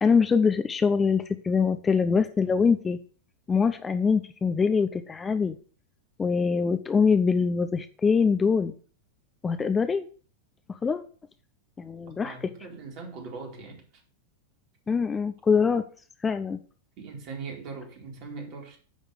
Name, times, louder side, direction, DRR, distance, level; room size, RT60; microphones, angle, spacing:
voice 1, 0.0-3.0 3.5-5.5 6.2-8.7 9.4-10.1 10.8-11.0 11.8-12.3 14.9-15.8 16.2-16.6, left 5 dB, 15° left, 0.5 m, -23 dB
voice 2, 12.2-13.9 17.0-18.8, right 4 dB, 40° right, 2.5 m, -40 dB
10.0 x 3.7 x 6.5 m
figure-of-eight pair, 90°, 0 cm